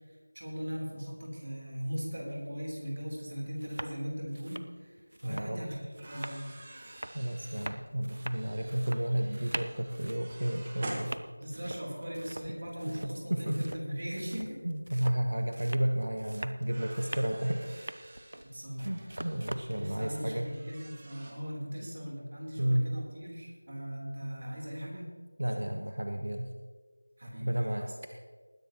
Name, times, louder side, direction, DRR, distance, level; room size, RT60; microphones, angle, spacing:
voice 1, 0.1-6.4 11.4-14.6 18.4-19.1 19.7-25.0 27.2-27.9, equal, 45° right, -2 dB, 3.6 m, -39 dB
sound 1, 2.9-3.0 3.5-3.9 4.2-19.7, right 1 dB, 70° right, 0.7 m, -44 dB
voice 2, 5.2-5.7 7.1-11.1 12.8-13.7 14.6-18.0 18.8-20.5 21.8-21.9 22.6-22.9 25.4-26.5 27.4-27.9, right 1 dB, 85° right, 4 dB, 1.1 m, -32 dB
sound 2, 5.8-11.8 13.1-13.2 14.9-15.0 15.4-15.5 16.6-21.3, right 1 dB, 20° right, 1.3 m, -48 dB
20.0 x 10.5 x 3.0 m, 1.5 s
figure-of-eight pair, 175°, 0 cm